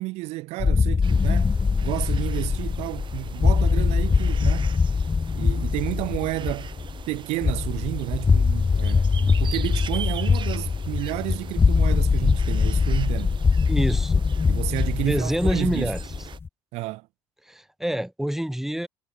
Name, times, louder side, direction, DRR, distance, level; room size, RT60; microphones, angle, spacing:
voice 1, 0.0-4.7 5.4-6.7 7.1-13.4 14.5-15.9 16.7-17.1, right 21 dB, 70° right, 3.1 m, -31 dB
sound 1, 0.6-16.5, left 5 dB, 20° left, 0.4 m, -22 dB
sound 2, 1.0-16.4, right 8 dB, 45° right, 5.5 m, -42 dB
voice 2, 13.7-14.3 15.0-16.0 17.5-18.9, right 1 dB, 5° right, 4.0 m, -27 dB
hypercardioid pair, 70°, 12 cm